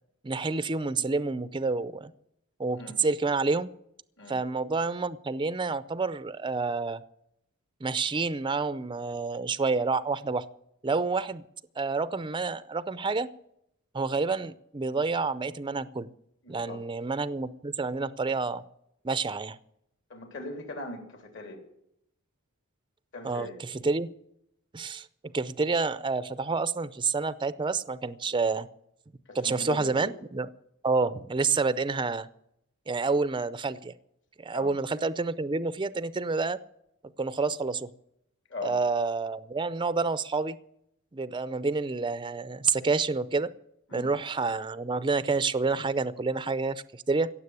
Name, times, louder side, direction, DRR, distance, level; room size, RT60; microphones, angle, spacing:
voice 1, 0.2-2.1 2.6-3.7 4.3-7.0 7.8-10.5 10.8-11.4 11.8-13.3 13.9-16.1 16.5-18.6 19.0-19.6 23.2-24.1 24.7-25.1 25.3-28.7 29.3-30.5 30.8-32.3 32.9-33.9 34.4-36.6 37.2-37.9 38.6-40.6 41.1-43.5 43.9-47.3, right 4 dB, 20° right, 15 dB, 0.5 m, -28 dB
voice 2, 16.4-16.8 20.1-21.6 23.1-23.6 29.3-30.1 34.5-34.7 38.5-38.8 43.9-44.1, left 2 dB, 60° left, 5 dB, 3.4 m, -40 dB
16.5 x 7.4 x 9.6 m, 0.76 s
head